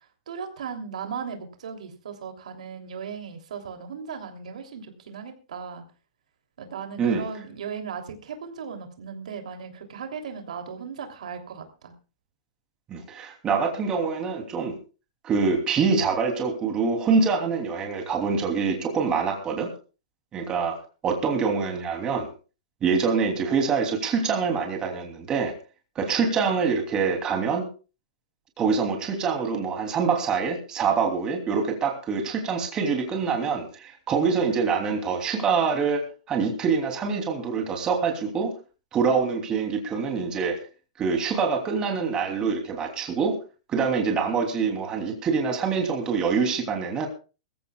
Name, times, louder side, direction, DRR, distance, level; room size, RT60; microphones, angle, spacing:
voice 1, 0.3-5.9 6.6-11.9, right 6 dB, 85° right, 4 dB, 3.1 m, -37 dB
voice 2, 12.9-14.7 15.2-19.7 20.3-20.8 21.0-22.3 22.8-25.5 25.9-27.7 28.6-38.5 38.9-40.6 41.0-43.3 43.7-47.1, right 5 dB, 20° right, 3 dB, 3.0 m, -25 dB
22.5 x 14.5 x 2.4 m, 0.34 s
hypercardioid pair, 155°, 4 cm